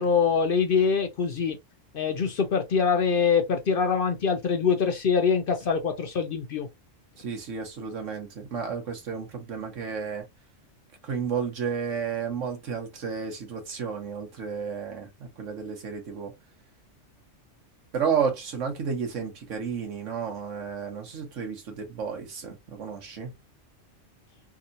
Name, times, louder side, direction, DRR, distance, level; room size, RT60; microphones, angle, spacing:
voice 1, 0.0-1.6 1.9-6.7, left 6 dB, 60° left, 0.6 m, -24 dB
voice 2, 7.2-10.2 11.0-16.3 17.9-23.3, right 6 dB, 75° right, 1.4 m, -32 dB
3.6 x 2.8 x 2.5 m
omnidirectional pair, 1.3 m